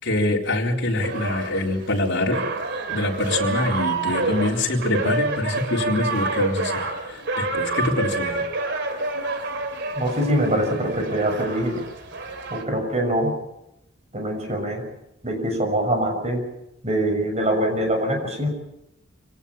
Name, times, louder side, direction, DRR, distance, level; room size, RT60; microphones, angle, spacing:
voice 1, 0.0-2.4 2.9-6.8 7.1-8.4, left 2 dB, 60° left, -1 dB, 4.0 m, -24 dB
sound 1, 1.0-12.6, right 3 dB, 60° right, 2.8 m, -28 dB
voice 2, 9.9-11.8 12.5-13.3 14.1-14.8 15.2-16.4 16.8-18.5, right 1 dB, 35° right, 4 dB, 6.4 m, -23 dB
26.0 x 18.0 x 7.2 m, 0.85 s
head